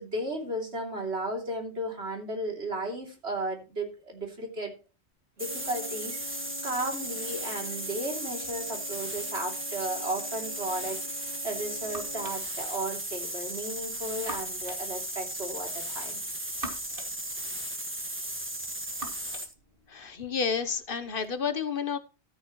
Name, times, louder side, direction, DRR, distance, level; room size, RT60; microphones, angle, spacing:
voice 1, 0.0-4.7 5.4-16.2, right 1 dB, 80° right, 1 dB, 3.4 m, -35 dB
sound 1, 5.4-19.5, right 1 dB, 10° right, 1.6 m, -36 dB
sound 2, 5.4-12.5, left 2 dB, 40° right, 4.4 m, -47 dB
sound 3, 11.2-21.4, right 2 dB, 55° right, 2.7 m, -47 dB
voice 2, 19.9-22.0, left 6 dB, 55° left, 12 dB, 1.1 m, -30 dB
13.0 x 9.8 x 3.1 m, 0.30 s
omnidirectional pair, 1.1 m